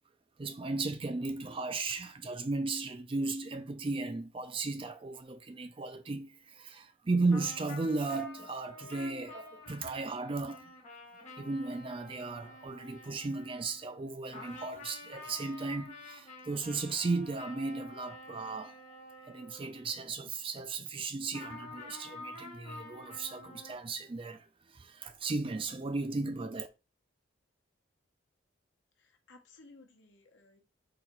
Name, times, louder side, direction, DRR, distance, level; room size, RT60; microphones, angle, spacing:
voice 1, 0.4-10.7 11.4-18.7 19.3-26.7, right 3 dB, 25° right, 0.4 m, -35 dB
sound 1, 7.3-14.1 14.3-20.3 21.3-23.7, left 2 dB, 35° left, 1.4 m, -49 dB
voice 2, 29.0-30.6, left 3 dB, 60° left, 1.0 m, -58 dB
4.0 x 2.8 x 4.5 m
head